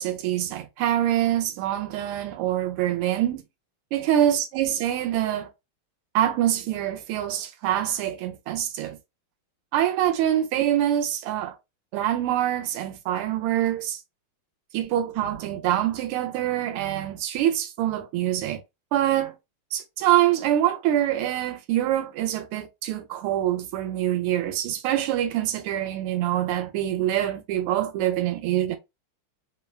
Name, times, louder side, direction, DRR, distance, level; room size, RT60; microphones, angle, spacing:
voice 1, 0.0-3.4 3.9-5.5 6.1-9.0 9.7-11.5 11.9-14.0 14.7-18.6 18.9-19.3 19.7-28.8, right 12 dB, 85° right, 1.5 m, -25 dB
3.6 x 2.1 x 2.3 m
omnidirectional pair, 2.4 m